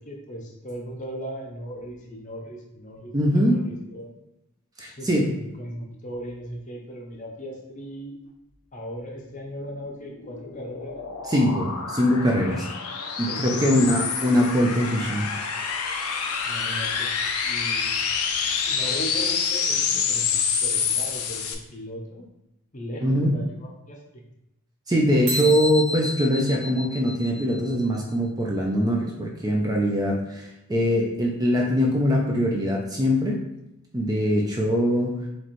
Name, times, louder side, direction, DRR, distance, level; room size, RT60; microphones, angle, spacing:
voice 1, 0.0-4.1 4.8-8.2 8.7-11.1 13.2-13.7 16.4-17.1 17.4-18.2 18.6-22.3 22.7-24.2, equal, 35° left, 0 dB, 0.7 m, -37 dB
voice 2, 3.1-3.7 4.8-5.3 11.2-12.7 13.2-15.3 23.0-23.3 24.9-33.4 33.9-35.2, equal, 15° right, -1 dB, 0.4 m, -22 dB
sound 1, 9.8-21.5, left 6 dB, 80° left, 0.5 m, -27 dB
sound 2, 25.3-27.9, left 1 dB, 80° right, 1.0 m, -31 dB
4.2 x 3.1 x 3.1 m, 0.89 s
head